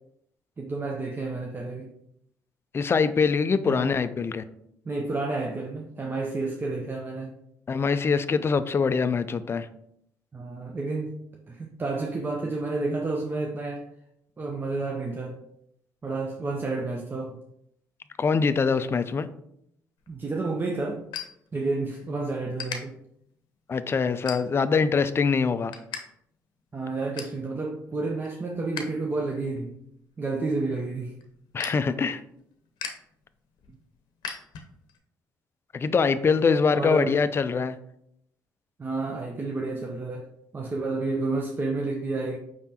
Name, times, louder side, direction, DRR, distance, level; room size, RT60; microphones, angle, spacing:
voice 1, 0.6-1.9 3.6-3.9 4.9-7.3 10.3-11.2 11.5-13.9 14.4-15.4 16.0-17.4 20.1-21.0 21.5-23.0 26.7-29.7 30.2-31.1 36.7-37.2 38.8-42.4, right 3 dB, 30° right, 1 dB, 0.6 m, -30 dB
voice 2, 2.7-4.4 7.7-9.7 18.2-19.3 23.7-25.7 31.5-32.2 35.7-37.8, left 5 dB, 35° left, 12 dB, 0.3 m, -23 dB
sound 1, 20.0-22.1 22.3-22.8 23.4-23.6 24.1-24.8 25.2-26.0 26.3-26.4 26.8-27.4 27.9-28.8 29.2-35.0, left 7 dB, 75° left, 0.7 m, -40 dB
4.9 x 3.5 x 2.8 m, 0.74 s
cardioid pair, 80°, 7 cm